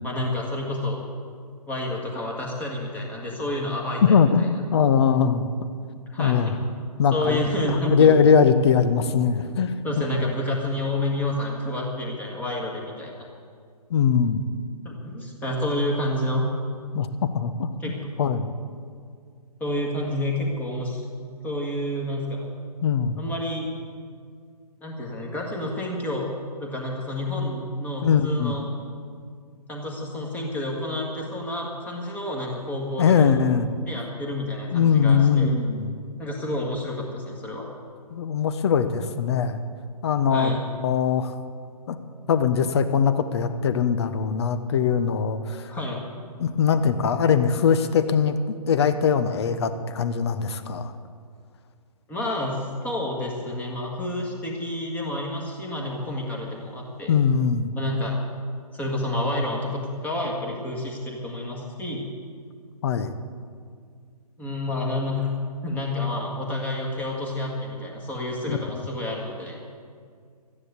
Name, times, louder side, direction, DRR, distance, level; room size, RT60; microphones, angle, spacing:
voice 1, 0.0-1.0 1.7-4.0 6.1-6.5 7.1-8.2 9.8-13.3 14.8-16.4 17.8-18.0 19.6-21.0 21.4-22.5 23.2-23.7 24.8-26.3 26.6-28.6 29.7-33.3 33.8-35.5 36.2-37.7 40.3-40.6 45.7-46.0 52.1-57.1 57.8-58.2 58.7-62.1 64.4-65.3 65.6-69.6, left 1 dB, 10° left, -1 dB, 1.7 m, -29 dB
voice 2, 4.0-5.7 6.2-6.5 7.0-10.2 13.9-14.4 16.9-17.1 17.3-18.5 22.8-23.2 28.0-28.6 33.0-33.7 34.7-35.9 38.1-39.6 40.0-40.5 40.8-41.3 41.9-42.0 42.3-45.7 46.4-50.9 57.1-57.7 62.8-63.1 68.5-68.8, left 6 dB, 40° left, 11 dB, 0.9 m, -21 dB
13.0 x 9.9 x 8.1 m, 2.1 s
hypercardioid pair, 145°, 20 cm